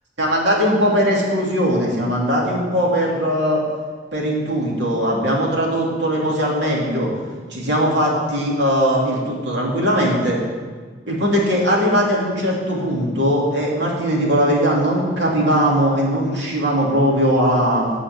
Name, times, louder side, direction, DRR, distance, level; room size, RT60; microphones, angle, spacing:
voice 1, 0.2-3.6 4.1-7.1 7.5-10.4 11.1-17.9, equal, 70° right, -3 dB, 2.8 m, -19 dB
10.5 x 5.0 x 8.0 m, 1.5 s
head